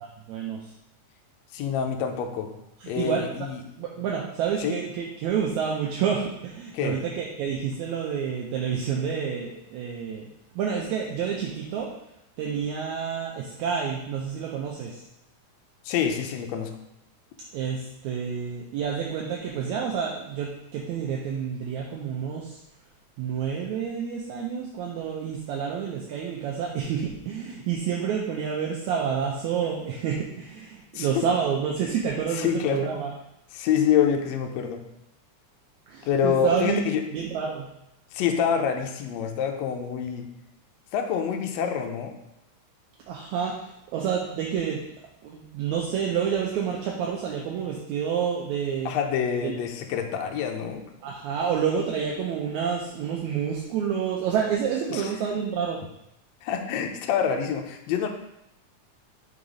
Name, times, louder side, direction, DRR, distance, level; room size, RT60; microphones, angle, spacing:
voice 1, 0.3-0.7 2.8-3.4 3.8-10.3 10.6-11.9 12.4-15.0 17.5-22.6 23.2-33.1 35.9-36.9 37.1-37.7 43.1-44.8 45.2-48.9 49.4-49.5 51.0-55.8, right 7 dB, 80° right, -2 dB, 2.0 m, -29 dB
voice 2, 1.5-2.5 2.9-3.6 4.6-4.8 6.7-7.0 15.8-16.7 30.9-31.3 32.3-32.9 33.5-34.8 36.1-37.0 38.1-40.3 40.9-42.1 48.9-50.9 54.9-55.1 56.4-58.1, left 8 dB, 75° left, 4 dB, 1.7 m, -26 dB
5.5 x 3.9 x 4.9 m, 0.83 s
omnidirectional pair, 3.5 m